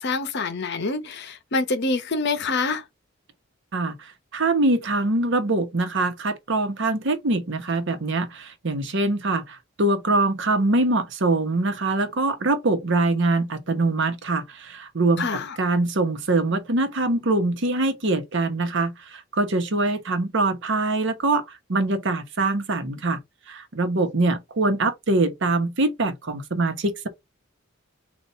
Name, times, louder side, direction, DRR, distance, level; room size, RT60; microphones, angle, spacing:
voice 1, 0.0-2.8 15.2-15.6, left 3 dB, 55° left, 0.8 m, -26 dB
voice 2, 3.7-23.2 23.5-27.1, right 2 dB, 65° right, 1.0 m, -23 dB
4.1 x 2.5 x 4.4 m
head